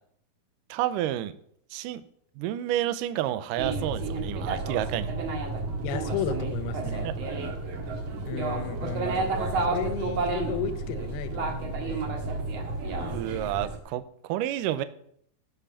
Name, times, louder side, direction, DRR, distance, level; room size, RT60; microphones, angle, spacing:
voice 1, 0.7-1.3 1.7-2.0 2.4-5.1 7.0-7.1 13.1-14.8, right 12 dB, 85° right, 12 dB, 2.0 m, -30 dB
sound 1, 3.6-13.8, right 3 dB, 55° right, 2.1 m, -31 dB
voice 2, 5.8-7.1 8.3-9.4 9.7-12.1, left 7 dB, 90° left, 11 dB, 2.9 m, -34 dB
13.0 x 5.9 x 7.2 m, 0.67 s
omnidirectional pair, 4.4 m